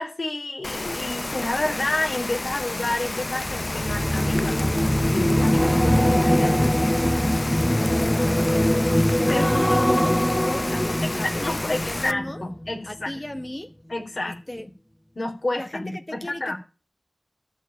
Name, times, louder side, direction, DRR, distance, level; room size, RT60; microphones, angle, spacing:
voice 1, 0.0-7.0 9.3-9.5 11.2-13.1 13.9-14.6 15.2-16.6, left 2 dB, 70° left, 4.1 m, -30 dB
Rain, 0.6-12.1, left 2 dB, 45° left, 0.7 m, -31 dB
sound 1, 3.4-12.8 13.1-13.4, equal, 5° left, 0.8 m, -22 dB
voice 2, 7.7-12.4 12.9-13.7 14.5-14.7 15.6-16.6, left 1 dB, 25° left, 1.3 m, -37 dB
14.0 x 5.9 x 9.1 m
wide cardioid pair, 60°, 0 cm